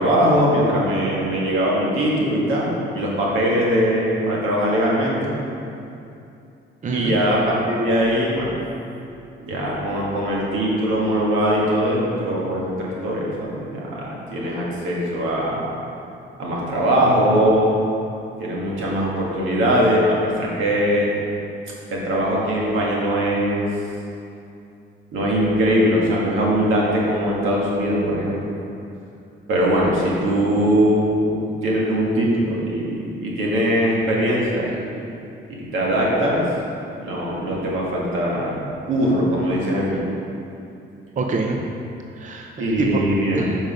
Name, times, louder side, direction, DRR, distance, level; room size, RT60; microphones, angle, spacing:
voice 1, 0.0-5.3 6.9-8.5 9.4-15.7 16.4-17.7 18.4-21.2 21.9-23.7 25.1-28.4 29.5-35.0 35.7-36.5 37.0-38.6 38.9-40.0 42.6-43.5, equal, 85° right, -4 dB, 1.8 m, -21 dB
voice 2, 6.8-7.2 41.2-41.7 42.1-43.0 43.3-43.6, right 4 dB, 40° right, 2 dB, 0.7 m, -25 dB
7.3 x 5.3 x 5.1 m, 2.6 s
cardioid pair, 90°, 20 cm